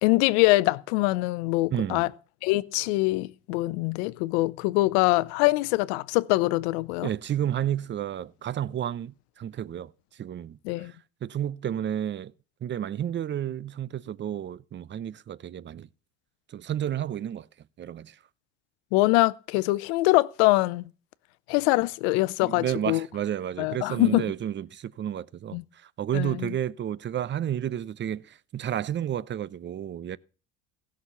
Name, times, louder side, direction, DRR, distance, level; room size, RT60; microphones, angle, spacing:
voice 1, 0.0-2.1 2.4-7.1 10.6-10.9 18.9-20.8 21.5-23.0 23.6-24.2 25.5-25.6 26.1-26.5, left 21 dB, 80° left, 0.7 m, -24 dB
voice 2, 1.7-2.1 7.0-12.3 12.6-15.9 16.5-17.5 17.8-18.2 22.4-30.2, right 10 dB, 35° right, 0.6 m, -31 dB
16.0 x 6.3 x 6.9 m
supercardioid pair, 75°, 32 cm